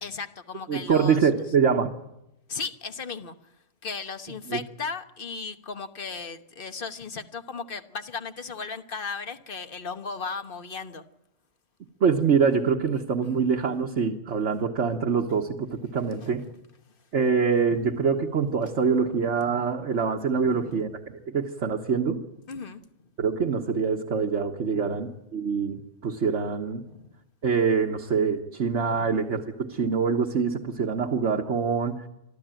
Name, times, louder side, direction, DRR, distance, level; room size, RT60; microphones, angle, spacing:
voice 1, 0.0-1.3 2.5-3.3 3.8-11.0 13.2-13.4 16.2-16.5 18.8-19.2 20.3-20.9 22.5-22.8 24.7-25.1 26.9-27.1 28.9-29.1, left 5 dB, 45° left, 10 dB, 1.3 m, -36 dB
voice 2, 0.7-1.9 4.5-4.6 12.0-16.4 17.1-21.0 21.3-22.2 23.2-26.8 27.4-32.0, right 5 dB, 65° right, 1 dB, 1.6 m, -25 dB
24.5 x 14.5 x 9.1 m, 0.88 s
omnidirectional pair, 1.3 m